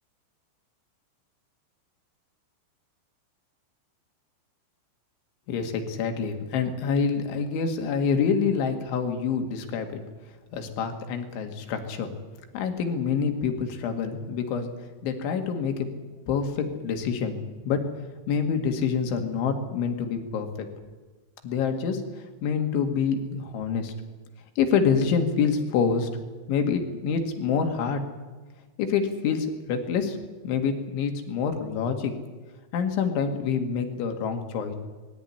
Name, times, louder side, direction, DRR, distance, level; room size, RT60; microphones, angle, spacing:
voice 1, 5.5-10.0 10.5-12.1 12.5-14.7 15.0-15.9 16.3-17.4 17.6-17.8 18.3-20.7 21.4-23.9 24.6-26.1 26.5-28.0 28.8-30.2 30.4-32.1 32.7-34.8, left 6 dB, 70° left, 5 dB, 4.3 m, -26 dB
20.5 x 16.5 x 10.0 m, 1.3 s
omnidirectional pair, 5.7 m